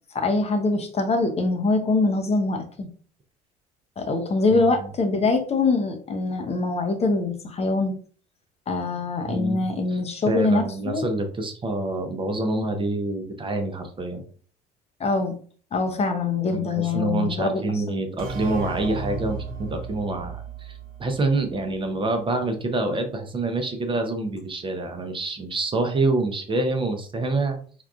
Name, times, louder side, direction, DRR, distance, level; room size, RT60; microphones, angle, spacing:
voice 1, 0.1-2.9 4.0-7.9 8.7-11.0 15.0-15.3 15.7-17.6, left 3 dB, 30° left, 5 dB, 0.6 m, -23 dB
voice 2, 4.5-4.9 9.3-10.0 10.3-14.2 16.5-27.6, right 2 dB, 25° right, 5 dB, 0.7 m, -27 dB
sound 1, 18.2-21.8, right 4 dB, 45° right, 1.0 m, -35 dB
3.5 x 2.4 x 2.3 m, 0.44 s
hypercardioid pair, 65°, 20 cm